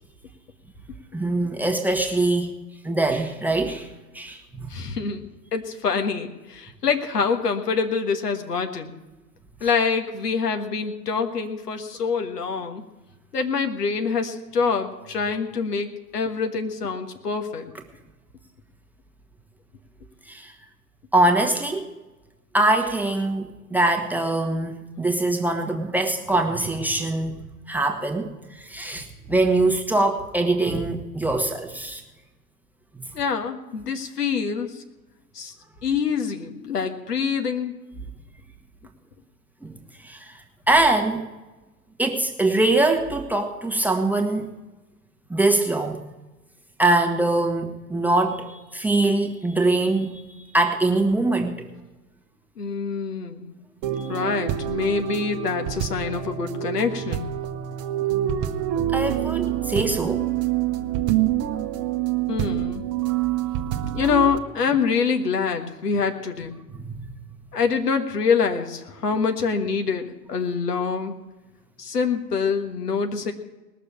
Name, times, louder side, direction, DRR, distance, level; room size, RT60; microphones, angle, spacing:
voice 1, 1.1-2.5 2.8-3.9 4.1-4.7 20.3-20.5 21.1-21.9 22.5-28.3 28.6-32.0 39.6-39.7 40.0-40.4 40.7-41.2 42.0-44.5 45.3-46.0 46.8-51.7 54.0-54.1 58.9-60.2 66.7-67.0, right 2 dB, 5° right, 1 dB, 1.2 m, -23 dB
voice 2, 4.7-8.9 9.6-12.8 13.3-17.7 33.1-34.8 35.3-35.5 35.8-37.7 52.6-53.5 54.1-57.3 62.3-62.8 63.9-66.5 67.5-71.1 71.8-73.3, left 5 dB, 75° left, 5 dB, 1.7 m, -25 dB
sound 1, 53.8-64.4, right 12 dB, 35° right, 1.0 m, -26 dB
19.5 x 6.7 x 7.2 m, 1.1 s
figure-of-eight pair, 95°, 48 cm